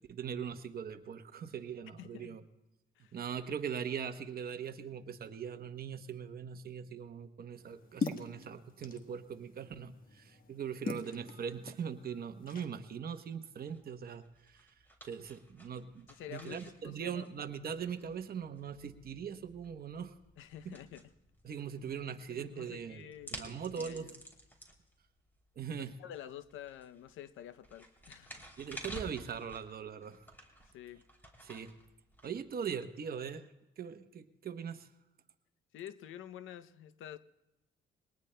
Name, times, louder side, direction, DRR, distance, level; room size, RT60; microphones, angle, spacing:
voice 1, 0.1-2.4 3.1-14.2 14.5-14.6 15.1-20.1 20.6-20.7 21.4-24.1 25.6-26.0 28.6-30.2 31.4-31.7 32.2-33.5 33.8-34.9, right 7 dB, 50° right, 9 dB, 0.9 m, -41 dB
voice 2, 2.0-2.4 3.0-3.2 16.1-17.5 20.4-21.1 22.2-24.1 26.0-28.4 30.7-31.0 35.7-37.2, left 11 dB, 80° left, 13 dB, 0.6 m, -49 dB
sound 1, 7.5-12.7, left 4 dB, 45° left, 1.3 m, -43 dB
sound 2, 13.7-32.9, equal, 10° left, 2.8 m, -53 dB
22.0 x 19.0 x 2.2 m, 0.94 s
cardioid pair, 90°, 20 cm